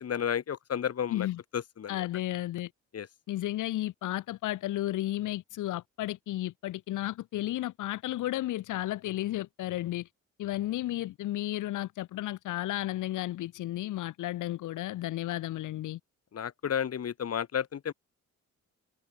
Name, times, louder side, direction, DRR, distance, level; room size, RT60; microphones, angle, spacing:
voice 1, 0.0-1.3 1.5-2.1 2.9-3.1 16.3-17.9, left 8 dB, 55° left, 3.9 m, -32 dB
voice 2, 1.1-1.4 1.9-2.7 3.3-10.1 10.4-16.0, left 15 dB, 85° left, 3.6 m, -33 dB
cardioid pair, 90°, 30 cm